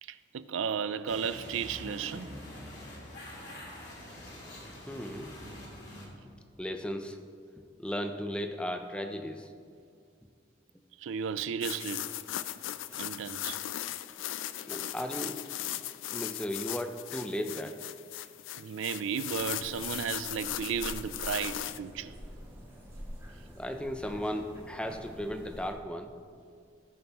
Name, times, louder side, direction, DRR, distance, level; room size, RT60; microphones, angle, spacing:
voice 1, 0.0-2.3 11.0-12.1 13.0-13.6 18.6-22.2, right 7 dB, 85° right, 0.4 m, -34 dB
sound 1, 1.1-6.1, left 1 dB, 55° left, 2.4 m, -45 dB
voice 2, 4.9-5.3 6.6-7.2 7.8-9.5 14.7-15.4 15.7-15.8 16.1-17.8 23.6-26.1, equal, 5° left, 0.5 m, -36 dB
sound 2, 11.6-21.8, left 13 dB, 80° left, 0.3 m, -38 dB
sound 3, 19.3-25.7, equal, 15° right, 2.3 m, -47 dB
17.5 x 7.0 x 3.0 m
head